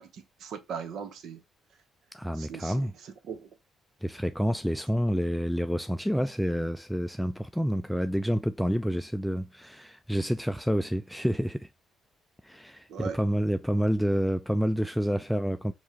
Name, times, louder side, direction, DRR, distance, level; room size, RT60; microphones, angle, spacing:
voice 1, 0.0-1.4 2.3-3.5 12.9-13.2, right 6 dB, 75° right, 0.8 m, -39 dB
voice 2, 2.1-2.9 4.0-11.7 12.4-15.7, equal, ahead, 0.3 m, -28 dB
4.7 x 2.8 x 2.9 m
cardioid pair, 90°, 0 cm